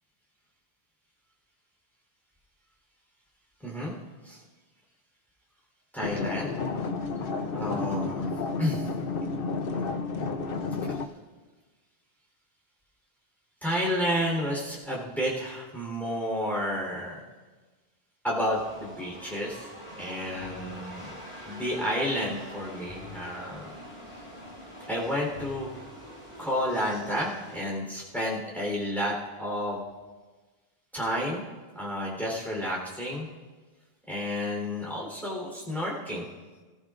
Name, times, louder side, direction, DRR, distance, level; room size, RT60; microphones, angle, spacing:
voice 1, 3.6-3.9 4.2-4.4 5.9-6.5 7.5-8.3 8.6-8.9 10.9-11.0 13.6-17.2 18.2-19.7 19.9-21.1 21.5-23.7 24.9-25.7 26.4-29.8 30.9-31.4 31.7-33.3 34.1-36.3, equal, ahead, -4 dB, 3.7 m, -31 dB
sound 1, 6.0-11.1, left 4 dB, 65° left, 1.0 m, -31 dB
sound 2, 18.5-27.6, equal, 45° left, 6.0 m, -44 dB
26.5 x 15.5 x 2.5 m, 1.3 s
omnidirectional pair, 1.0 m